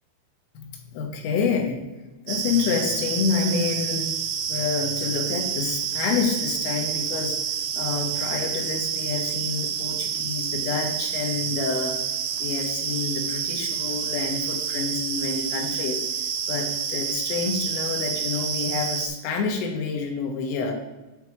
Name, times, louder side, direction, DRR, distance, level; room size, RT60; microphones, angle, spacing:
voice 1, 0.6-1.8 2.3-4.1 4.5-7.4 7.7-12.0 12.4-16.0 16.5-20.8, left 5 dB, 85° left, 1 dB, 3.5 m, -28 dB
sound 1, 2.3-19.1, right 7 dB, 90° right, 3.4 m, -28 dB
8.8 x 4.7 x 3.0 m, 1.1 s
omnidirectional pair, 5.7 m